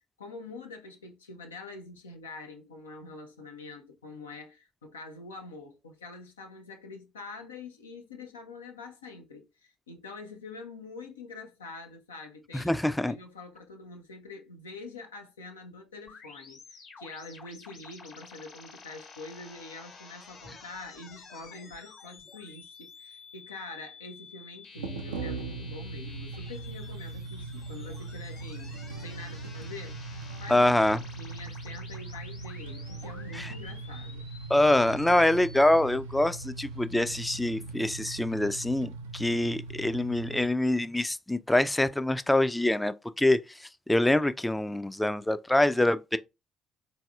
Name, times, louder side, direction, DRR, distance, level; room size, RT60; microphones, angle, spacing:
voice 1, 0.2-12.8 13.0-28.7 29.0-30.7 31.1-34.2, left 3 dB, 85° left, 0.5 m, -45 dB
voice 2, 12.5-13.1 30.5-31.0 33.3-33.5 34.5-43.4 43.9-46.2, left 1 dB, 10° left, 0.3 m, -25 dB
sound 1, 16.1-35.8, left 4 dB, 60° left, 1.3 m, -50 dB
sound 2, 24.8-40.5, right 3 dB, 80° right, 0.3 m, -40 dB
3.9 x 2.7 x 2.3 m
figure-of-eight pair, 45°, 0 cm